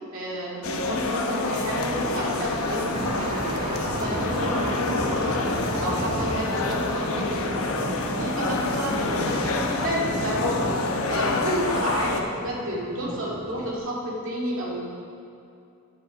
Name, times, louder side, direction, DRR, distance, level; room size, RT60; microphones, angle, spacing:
voice 1, 0.1-5.4 5.8-7.6 8.1-14.9, equal, 65° right, -4 dB, 2.3 m, -31 dB
sound 1, 0.6-12.2, left 3 dB, 75° left, 0.9 m, -27 dB
Thunder, 2.0-13.8, right 1 dB, 30° right, 0.9 m, -33 dB
10.0 x 5.6 x 7.2 m, 2.5 s
head